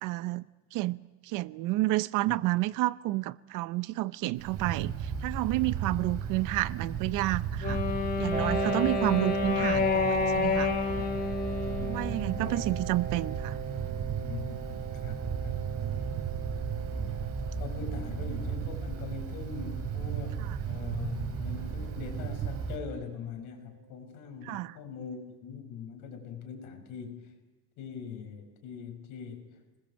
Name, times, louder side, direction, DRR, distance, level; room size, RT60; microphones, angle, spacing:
voice 1, 0.0-7.8 8.2-10.7 11.8-13.6 24.4-24.8, right 18 dB, 80° right, 0.8 m, -30 dB
Wind, 4.4-22.8, right 6 dB, 50° right, 4.0 m, -35 dB
Wind instrument woodwind instrument, 7.6-12.7, left 4 dB, 30° left, 2.0 m, -29 dB
Piano, 8.3-23.7, right 6 dB, 25° right, 2.4 m, -40 dB
voice 2, 8.6-9.1 10.9-11.1 11.5-12.6 14.2-15.6 17.6-27.3 27.8-29.8, left 6 dB, 85° left, 5.5 m, -42 dB
28.0 x 20.5 x 8.0 m
cardioid pair, 160°, 31 cm